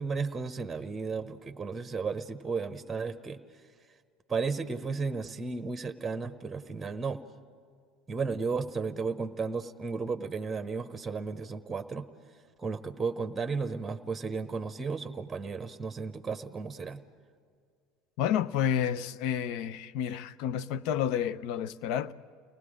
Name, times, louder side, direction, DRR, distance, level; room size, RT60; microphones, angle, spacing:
voice 1, 0.0-3.4 4.3-7.2 8.1-12.1 12.6-17.0, right 4 dB, 20° right, 1.0 m, -34 dB
voice 2, 18.2-22.1, left 9 dB, 60° left, 0.6 m, -30 dB
30.0 x 19.0 x 5.0 m
hypercardioid pair, 70°, 0 cm